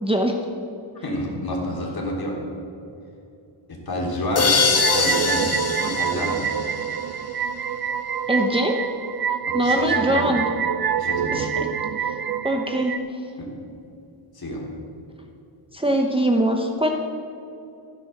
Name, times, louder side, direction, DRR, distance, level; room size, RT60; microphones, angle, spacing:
voice 1, 0.0-0.3 8.3-8.7 9.5-10.4 11.3-11.7 12.4-12.9 15.7-16.9, right 1 dB, 10° right, 1 dB, 0.9 m, -22 dB
voice 2, 1.0-2.4 3.7-4.5 4.9-5.5 5.8-6.4 9.6-10.3 11.0-11.3 13.4-13.5 14.3-14.7, equal, 45° left, -2 dB, 3.4 m, -28 dB
sound 1, 4.4-7.2, left 4 dB, 30° left, 1.1 m, -23 dB
sound 2, 4.7-13.0, right 8 dB, 45° right, 0.6 m, -26 dB
14.5 x 10.0 x 6.6 m, 2.6 s
wide cardioid pair, 145°, 50 cm